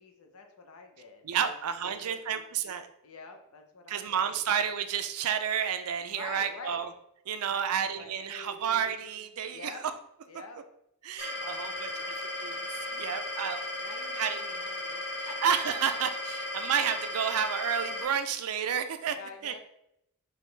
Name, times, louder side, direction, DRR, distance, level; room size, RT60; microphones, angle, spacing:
voice 1, 0.0-1.6 1.8-2.4 3.0-4.6 6.1-6.8 7.5-9.0 9.5-9.8 10.3-10.6 11.4-12.1 12.9-15.4 19.1-19.6, left 4 dB, 80° left, 4 dB, 0.7 m, -48 dB
voice 2, 1.2-2.9 3.9-6.9 7.3-9.8 11.0-12.6 12.9-13.6 14.2-14.4 15.4-19.2 19.4-19.5, right 8 dB, 90° right, 9 dB, 0.4 m, -31 dB
sound 1, 11.2-18.0, left 1 dB, 50° left, 1.1 m, -36 dB
4.8 x 3.0 x 3.2 m, 0.78 s
head